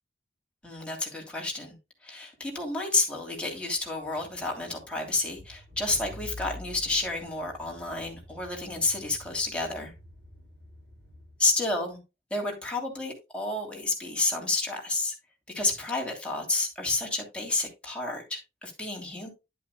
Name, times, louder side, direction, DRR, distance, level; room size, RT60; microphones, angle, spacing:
voice 1, 0.6-1.8 2.0-9.9 11.4-12.0 12.3-15.1 15.5-19.3, left 2 dB, 5° left, 3.0 m, -30 dB
Car / Engine, 3.4-11.7, left 1 dB, 70° right, 6.0 m, -48 dB
10.5 x 8.4 x 2.3 m
head